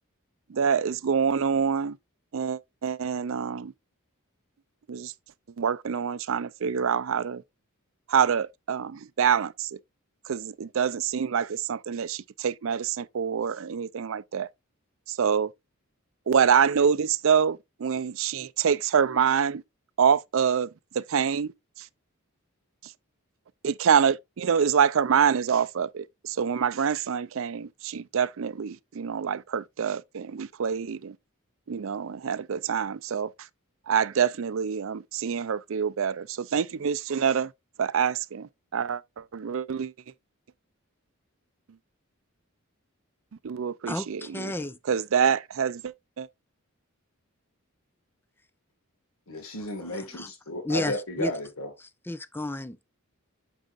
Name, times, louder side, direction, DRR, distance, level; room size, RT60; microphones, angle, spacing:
voice 1, 0.5-1.9 2.3-3.7 4.9-5.1 5.6-7.4 8.1-9.5 10.3-14.5 15.2-15.5 16.3-19.6 20.0-20.7 21.1-21.5 23.6-26.0 26.4-31.1 31.7-33.3 33.9-36.2 36.5-37.5 37.8-38.5 38.7-39.0 39.3-39.9 43.4-44.2 44.9-45.8, right 7 dB, 65° right, 0.4 m, -25 dB
voice 2, 43.9-44.8 49.8-50.3 50.6-51.3 51.8-52.8, left 1 dB, 10° left, 0.5 m, -33 dB
voice 3, 49.3-51.7, left 1 dB, 75° left, 1.8 m, -33 dB
9.1 x 6.3 x 2.5 m
head